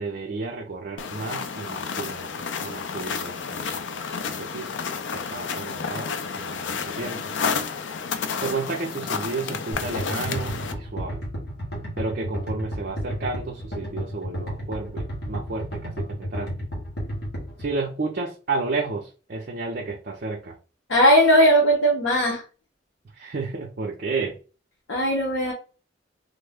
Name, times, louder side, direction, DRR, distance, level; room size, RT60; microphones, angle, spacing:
voice 1, 0.0-3.8 4.2-4.7 5.1-6.1 6.3-7.2 8.4-11.2 12.0-16.5 17.6-20.5 23.2-24.3, right 3 dB, 50° right, -1 dB, 0.5 m, -32 dB
sound 1, 1.0-10.7, left 5 dB, 70° left, 0.4 m, -31 dB
sound 2, 9.7-17.7, equal, 55° left, 1.3 m, -32 dB
voice 2, 20.9-22.4 24.9-25.5, equal, 90° left, -2 dB, 0.9 m, -18 dB
3.2 x 2.1 x 3.5 m, 0.35 s
head